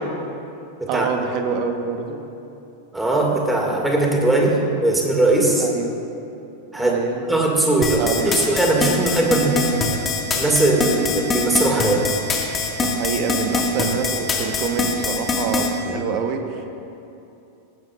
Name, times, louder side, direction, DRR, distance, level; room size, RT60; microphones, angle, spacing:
voice 1, 0.9-2.3 5.6-6.0 6.8-7.2 8.0-8.4 12.7-16.7, right 6 dB, 40° right, 6 dB, 1.2 m, -26 dB
voice 2, 2.9-5.7 6.7-7.0 7.3-9.8 10.3-12.0 15.8-16.0, right 2 dB, 5° right, -1 dB, 2.1 m, -19 dB
sound 1, 7.8-15.7, left 4 dB, 20° left, 1.8 m, -22 dB
19.0 x 15.5 x 2.5 m, 2.8 s
figure-of-eight pair, 90°, 0 cm